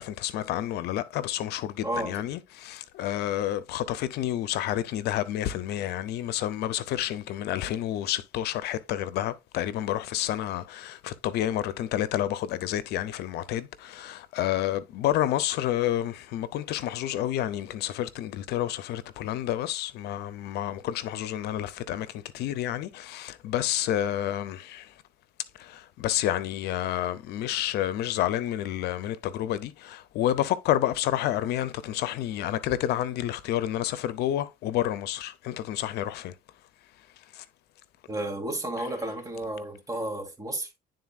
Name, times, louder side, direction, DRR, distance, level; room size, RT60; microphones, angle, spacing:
voice 1, 0.0-24.9 25.6-36.3 37.3-37.4, left 12 dB, 75° left, 0.6 m, -29 dB
voice 2, 1.8-2.2 38.1-40.7, right 1 dB, 20° right, 2.4 m, -32 dB
10.5 x 3.9 x 2.4 m
cardioid pair, 110°, 17 cm